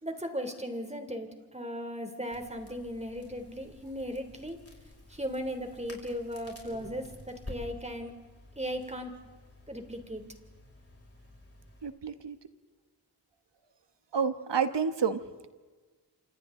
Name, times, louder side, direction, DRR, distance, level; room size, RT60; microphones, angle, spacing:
voice 1, 0.0-4.6 5.1-8.1 8.6-9.2 9.7-10.2, equal, 15° right, 6 dB, 3.2 m, -37 dB
Crackle, 2.3-11.9, left 1 dB, 35° left, 6.1 m, -51 dB
voice 2, 11.8-12.4 14.1-15.2, right 6 dB, 85° right, 10 dB, 1.4 m, -29 dB
28.5 x 27.0 x 3.8 m, 1.4 s
wide cardioid pair, 55°, 41 cm